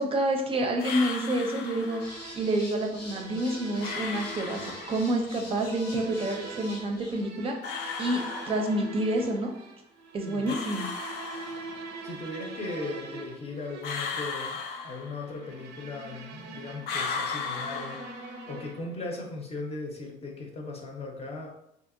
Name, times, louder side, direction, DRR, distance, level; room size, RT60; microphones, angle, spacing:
voice 1, 0.0-2.0 2.3-8.2 8.5-9.5 10.1-10.9, right 1 dB, 35° right, 2 dB, 0.5 m, -28 dB
sound 1, 0.8-2.3 3.8-5.3 7.6-9.2 10.5-12.0 13.8-15.6 16.8-18.7, left 5 dB, 75° left, 0.5 m, -36 dB
sound 2, 1.0-19.0, right 3 dB, 85° right, 0.5 m, -44 dB
sound 3, 2.0-7.2, left 2 dB, 90° left, 1.1 m, -46 dB
voice 2, 10.2-10.6 12.0-21.5, left 3 dB, 35° left, 0 dB, 0.7 m, -38 dB
2.7 x 2.7 x 2.6 m, 0.78 s
cardioid pair, 110°, 17 cm